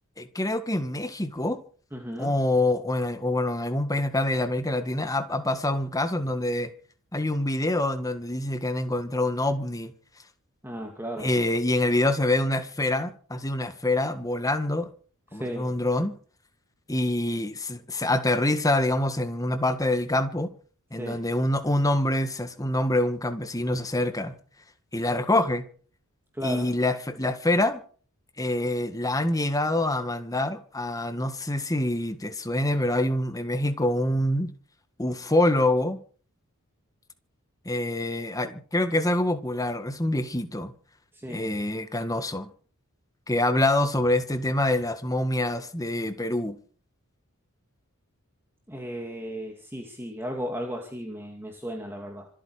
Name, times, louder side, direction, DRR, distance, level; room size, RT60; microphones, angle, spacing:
voice 1, 0.2-1.6 2.2-6.7 7.1-9.9 11.2-14.9 15.3-16.1 16.9-20.5 20.9-24.3 24.9-25.6 26.4-27.8 28.4-34.5 35.0-36.0 37.6-40.7 41.3-42.5 43.3-46.5, left 1 dB, 15° left, 1.6 m, -26 dB
voice 2, 1.9-2.3 10.6-11.3 15.3-15.7 21.0-21.2 26.3-26.7 41.1-41.5 48.7-52.3, equal, 10° right, 2.3 m, -35 dB
26.0 x 9.0 x 5.0 m
head